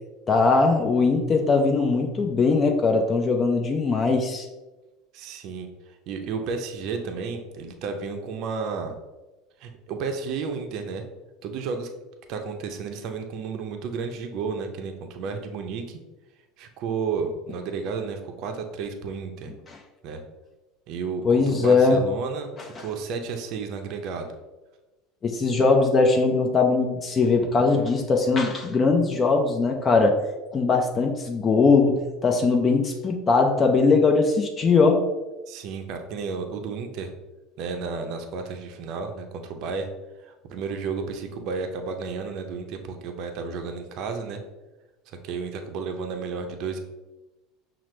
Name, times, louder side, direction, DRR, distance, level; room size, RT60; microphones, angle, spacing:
voice 1, 0.3-4.5 21.2-22.0 22.8-22.9 25.2-30.2 30.5-35.1, left 4 dB, 30° left, 3 dB, 0.5 m, -20 dB
voice 2, 5.1-9.0 9.6-11.0 11.4-11.9 12.3-16.0 16.6-19.5 20.0-20.2 20.9-22.5 22.8-24.3 35.5-37.1 37.6-39.9 40.2-44.4 45.2-46.8, right 5 dB, 60° right, 5 dB, 0.5 m, -32 dB
5.8 x 2.0 x 3.1 m, 1.1 s
hypercardioid pair, 95°, 0 cm